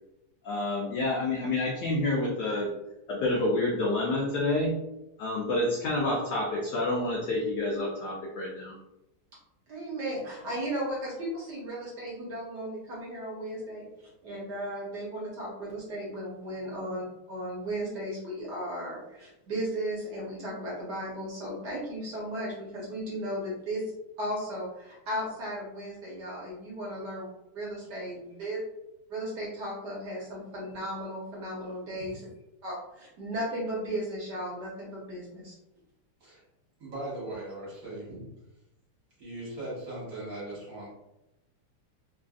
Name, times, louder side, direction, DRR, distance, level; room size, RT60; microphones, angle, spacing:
voice 1, 0.4-2.7 3.1-4.7 5.2-8.7, left 2 dB, 90° left, -2 dB, 0.9 m, -28 dB
voice 2, 9.7-23.8 24.2-27.3 27.5-28.6 29.1-32.2 32.6-35.6, right 1 dB, 60° right, -5 dB, 1.2 m, -35 dB
voice 3, 36.8-38.3 39.2-40.9, right 1 dB, 45° right, -7 dB, 1.4 m, -39 dB
3.3 x 2.5 x 2.3 m, 0.91 s
omnidirectional pair, 2.4 m